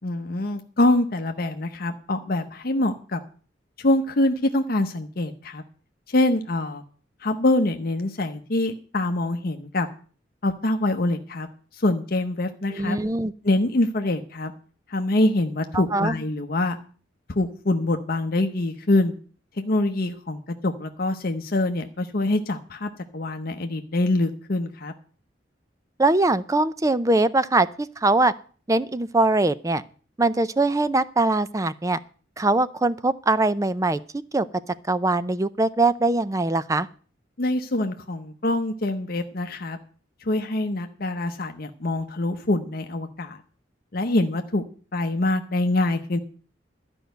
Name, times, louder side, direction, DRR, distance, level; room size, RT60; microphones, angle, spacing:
voice 1, 0.0-3.2 3.8-5.6 6.1-6.8 7.2-9.9 10.4-11.5 11.7-13.0 13.4-14.5 14.9-16.8 17.3-19.1 19.6-24.9 37.4-39.8 40.2-43.4 43.9-44.6 44.9-46.2, left 2 dB, 50° left, 6 dB, 0.8 m, -24 dB
voice 2, 12.7-13.3 15.7-16.1 26.0-28.3 28.7-29.8 30.2-32.0 32.4-34.0 34.3-34.4 34.9-36.9, right 2 dB, 15° right, 15 dB, 0.5 m, -22 dB
12.5 x 5.4 x 9.1 m, 0.42 s
head